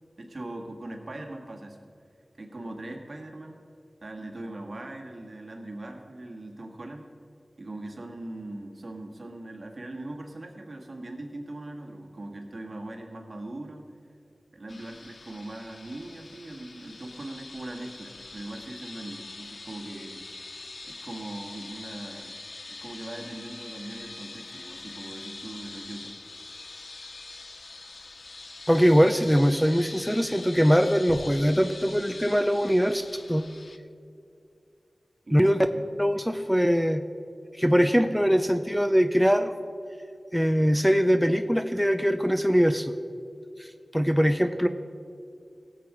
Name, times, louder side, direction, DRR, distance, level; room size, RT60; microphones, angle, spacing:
voice 1, 0.2-1.8 2.4-3.6 4.0-7.1 7.6-14.0 14.5-20.2 20.8-22.4 22.7-26.1 35.3-35.8, right 1 dB, 55° right, 2 dB, 1.7 m, -40 dB
sound 1, 14.7-33.8, left 3 dB, 65° left, 0.5 m, -43 dB
voice 2, 28.7-33.0 33.3-33.4 35.3-35.7 36.0-37.0 37.5-39.5 40.3-42.9 43.6-44.7, equal, ahead, 9 dB, 0.5 m, -22 dB
17.5 x 7.8 x 4.8 m, 2.4 s
wide cardioid pair, 60°, 0 cm